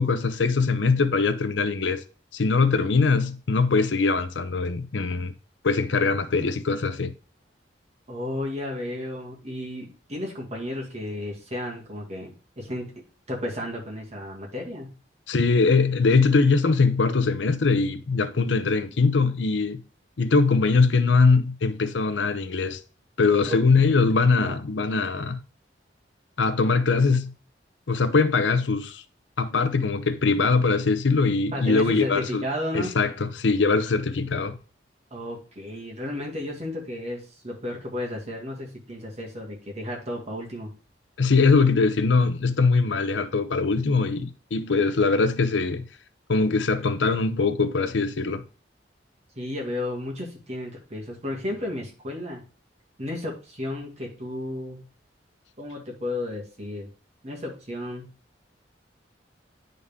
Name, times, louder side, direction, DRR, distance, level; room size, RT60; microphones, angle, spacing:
voice 1, 0.0-2.0 2.3-5.3 5.6-7.1 15.3-19.8 20.2-22.8 23.2-25.4 26.4-27.3 27.9-29.0 29.4-32.4 32.7-34.6 41.2-45.8 46.3-48.4, left 4 dB, 85° left, 0.7 m, -22 dB
voice 2, 8.1-14.9 23.5-23.6 24.3-24.6 31.5-32.9 35.1-40.7 49.4-52.4 53.0-54.8 55.6-56.9 57.2-58.1, left 1 dB, 40° right, 2.2 m, -33 dB
9.6 x 4.0 x 3.6 m
head